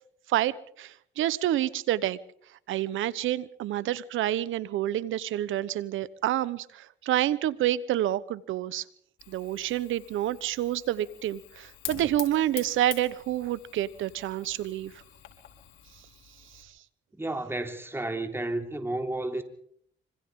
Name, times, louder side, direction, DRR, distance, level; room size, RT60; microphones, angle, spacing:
voice 1, 0.3-2.2 2.7-8.8 9.3-14.9, right 13 dB, 85° right, 1.1 m, -28 dB
Fire, 9.2-16.6, left 11 dB, 85° left, 4.5 m, -45 dB
voice 2, 17.1-19.4, right 2 dB, 10° right, 3.3 m, -32 dB
26.0 x 25.5 x 3.8 m
cardioid pair, 90°, 20 cm